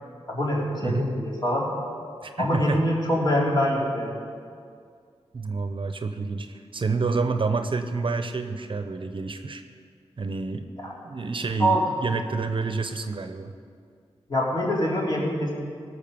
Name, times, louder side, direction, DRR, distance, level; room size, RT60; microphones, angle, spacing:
voice 1, 0.3-1.6 2.4-4.3 11.6-11.8 14.3-15.5, equal, 40° left, -4 dB, 3.9 m, -24 dB
voice 2, 2.2-2.8 5.3-9.6 10.2-10.7 11.0-13.5, right 4 dB, 55° right, 8 dB, 0.8 m, -28 dB
18.0 x 6.5 x 7.0 m, 2.2 s
cardioid pair, 70°, 11 cm